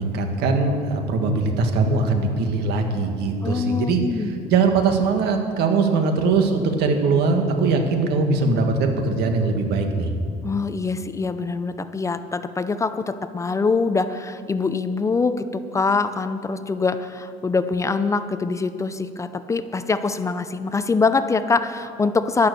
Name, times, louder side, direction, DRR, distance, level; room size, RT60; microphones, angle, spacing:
voice 1, 0.0-10.1, right 4 dB, 80° right, 5 dB, 1.7 m, -21 dB
voice 2, 3.4-4.3 10.4-22.5, left 4 dB, 20° left, 11 dB, 0.4 m, -24 dB
11.5 x 11.0 x 6.8 m, 2.3 s
cardioid pair, 140°, 17 cm